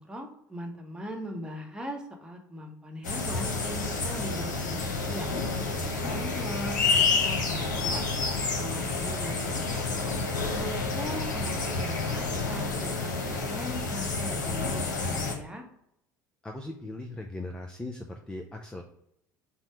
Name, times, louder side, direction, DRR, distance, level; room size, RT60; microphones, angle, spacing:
voice 1, 0.0-5.3 5.8-8.0 8.6-10.1 10.5-15.6, equal, 10° right, 1 dB, 0.9 m, -40 dB
sound 1, 3.0-15.3, left 4 dB, 75° left, 0.7 m, -29 dB
voice 2, 16.4-18.8, left 2 dB, 10° left, 2 dB, 0.4 m, -39 dB
4.2 x 2.1 x 4.5 m, 0.77 s
figure-of-eight pair, 65°, 10 cm